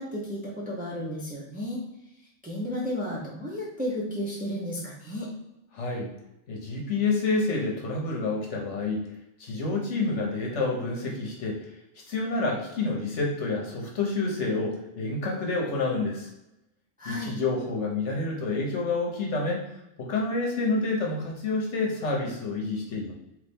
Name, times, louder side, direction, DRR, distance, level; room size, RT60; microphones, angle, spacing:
voice 1, 0.0-1.8 2.4-5.3 17.0-17.3, equal, 10° right, -5 dB, 0.8 m, -33 dB
voice 2, 5.7-6.1 6.5-9.0 9.4-11.7 12.1-16.3 17.0-19.7 20.0-23.1, left 3 dB, 65° left, -1 dB, 1.1 m, -28 dB
4.0 x 3.2 x 3.5 m, 0.89 s
omnidirectional pair, 1.3 m